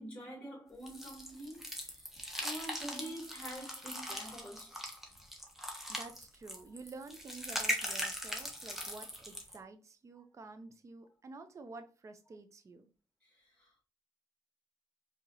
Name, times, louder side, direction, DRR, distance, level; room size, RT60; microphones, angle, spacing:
voice 1, 0.0-2.1 2.4-4.7 6.5-6.6 13.2-13.8, right 1 dB, 15° left, 1.7 m, -46 dB
sound 1, 0.9-9.6, equal, 5° right, 1.1 m, -40 dB
voice 2, 5.6-12.9, right 3 dB, 35° right, 0.6 m, -50 dB
4.7 x 2.9 x 2.7 m
cardioid pair, 90°, 8 cm